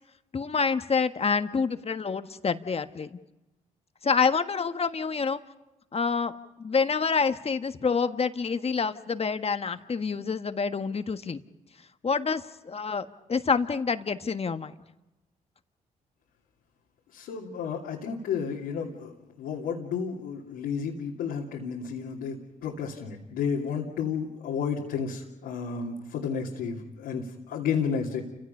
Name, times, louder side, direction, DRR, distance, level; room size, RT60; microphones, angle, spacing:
voice 1, 0.3-3.2 4.0-5.4 5.9-6.3 6.6-11.4 12.0-14.7, left 5 dB, 40° left, 9 dB, 1.4 m, -27 dB
voice 2, 17.1-19.1 19.4-28.2, left 6 dB, 80° left, -4 dB, 2.9 m, -32 dB
30.0 x 16.5 x 5.6 m, 0.99 s
supercardioid pair, 50°, 16 cm